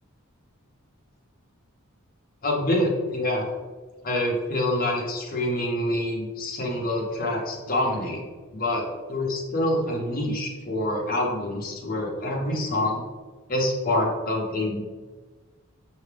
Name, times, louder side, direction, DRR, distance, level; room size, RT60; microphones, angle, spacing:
voice 1, 2.4-3.5 4.0-8.2 8.5-8.8 9.1-13.0 13.5-14.8, left 1 dB, 40° left, -1 dB, 0.9 m, -26 dB
5.6 x 2.8 x 3.3 m, 1.3 s
head